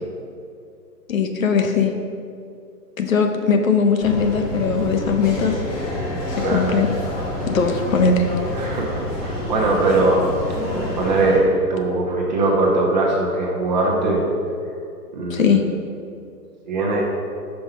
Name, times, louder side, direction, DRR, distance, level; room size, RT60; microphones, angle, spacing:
voice 1, 1.1-1.9 3.0-5.5 6.4-6.9 7.5-8.2 15.3-15.7, left 5 dB, 55° left, 5 dB, 0.7 m, -19 dB
sound 1, 4.0-11.4, left 1 dB, 25° left, 1.0 m, -27 dB
voice 2, 8.5-10.2 11.0-14.2 15.1-15.6 16.7-17.0, right 2 dB, 25° right, -3 dB, 0.8 m, -20 dB
5.5 x 4.3 x 5.6 m, 2.4 s
hypercardioid pair, 160°, 49 cm